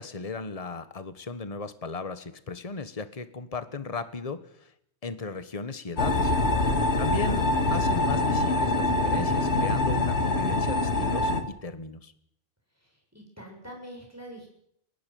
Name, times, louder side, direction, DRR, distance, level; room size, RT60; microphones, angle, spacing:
voice 1, 0.0-4.7 5.0-6.3 7.0-11.3 11.6-12.1, left 4 dB, 35° left, 12 dB, 1.4 m, -36 dB
sound 1, 6.0-11.4, left 2 dB, 75° left, 2.3 m, -24 dB
voice 2, 13.1-14.5, equal, 15° right, 0 dB, 7.3 m, -45 dB
30.0 x 12.0 x 9.4 m, 0.70 s
omnidirectional pair, 1.1 m